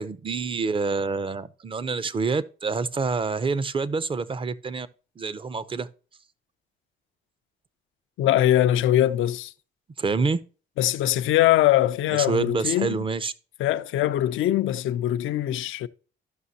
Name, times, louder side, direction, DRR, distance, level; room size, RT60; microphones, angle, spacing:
voice 1, 0.0-4.9 5.2-5.9 10.0-10.4 12.1-13.3, right 4 dB, 25° right, 0.5 m, -27 dB
voice 2, 8.2-9.5 10.8-13.0 13.6-15.9, left 13 dB, 80° left, 0.5 m, -22 dB
12.5 x 5.7 x 2.7 m
cardioid pair, 90°, 20 cm